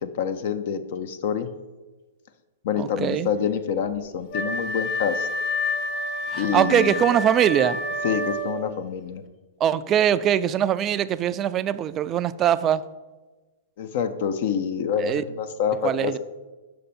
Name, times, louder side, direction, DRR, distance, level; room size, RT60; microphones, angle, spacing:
voice 1, 0.0-1.5 2.6-5.3 6.4-6.9 8.0-9.2 13.8-16.2, left 7 dB, 55° left, 10 dB, 0.5 m, -27 dB
voice 2, 2.8-3.3 6.3-7.8 9.6-12.8 15.0-15.2 15.8-16.2, right 10 dB, 25° right, 14 dB, 0.3 m, -22 dB
Wind instrument woodwind instrument, 4.3-8.7, left 2 dB, 40° left, 1.0 m, -29 dB
6.6 x 5.4 x 4.2 m, 1.2 s
hypercardioid pair, 125°, 0 cm